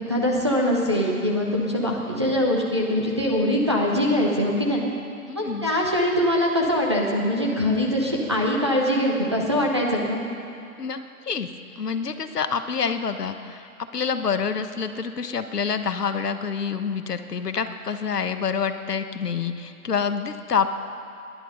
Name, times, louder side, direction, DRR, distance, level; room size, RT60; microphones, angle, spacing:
voice 1, 0.1-4.8 5.3-10.2, left 1 dB, 20° right, -3 dB, 0.8 m, -23 dB
voice 2, 5.3-5.7 10.8-11.5 11.8-20.7, left 6 dB, 80° left, 9 dB, 1.2 m, -27 dB
18.5 x 10.5 x 5.6 m, 2.5 s
hypercardioid pair, 170°, 46 cm